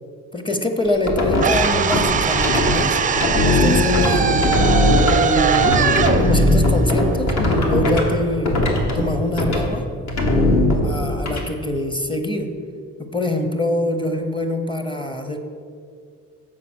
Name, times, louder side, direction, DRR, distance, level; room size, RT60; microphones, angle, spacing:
voice 1, 0.3-3.0 3.4-4.6 5.1-8.6 8.9-9.9 10.8-12.5 13.0-15.4, left 1 dB, 15° left, 6 dB, 0.8 m, -24 dB
sound 1, 0.8-2.7 3.2-8.1 8.4-9.0 9.4-9.6 10.1-11.4, left 1 dB, 60° left, 1.5 m, -19 dB
sound 2, 1.4-7.5, right 7 dB, 25° right, 0.4 m, -21 dB
7.5 x 5.3 x 6.2 m, 2.3 s
cardioid pair, 90°, 30 cm